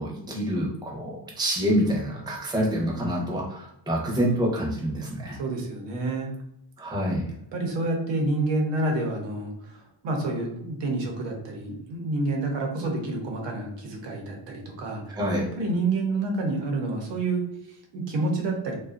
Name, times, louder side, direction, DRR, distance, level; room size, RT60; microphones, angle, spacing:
voice 1, 0.0-5.4 6.8-7.3 15.1-15.5, equal, 10° right, -3 dB, 0.6 m, -27 dB
voice 2, 5.3-6.3 7.5-15.2 15.6-18.8, right 2 dB, 80° right, 1 dB, 0.8 m, -28 dB
2.5 x 2.3 x 2.4 m, 0.78 s
cardioid pair, 115°, 43 cm